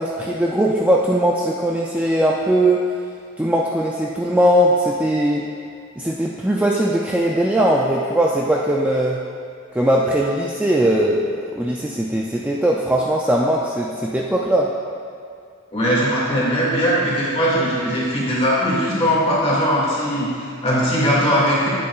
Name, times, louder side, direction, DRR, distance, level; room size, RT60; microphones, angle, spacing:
voice 1, 0.0-2.8 3.4-5.5 6.0-9.2 9.7-14.7, right 1 dB, 5° right, -3 dB, 0.3 m, -19 dB
voice 2, 15.7-21.7, equal, 30° left, -7 dB, 2.1 m, -20 dB
10.0 x 8.5 x 2.4 m, 2.4 s
head